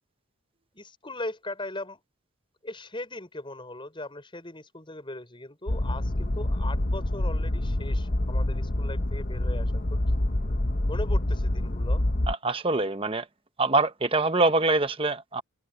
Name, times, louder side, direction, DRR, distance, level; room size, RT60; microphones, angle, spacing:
voice 1, 0.7-2.0 2.6-10.0 10.9-12.0, left 2 dB, 25° left, 6.5 m, -39 dB
sound 1, 5.7-12.3, left 1 dB, 40° left, 1.1 m, -26 dB
voice 2, 12.3-13.2 13.6-15.4, right 3 dB, 25° right, 1.0 m, -24 dB
head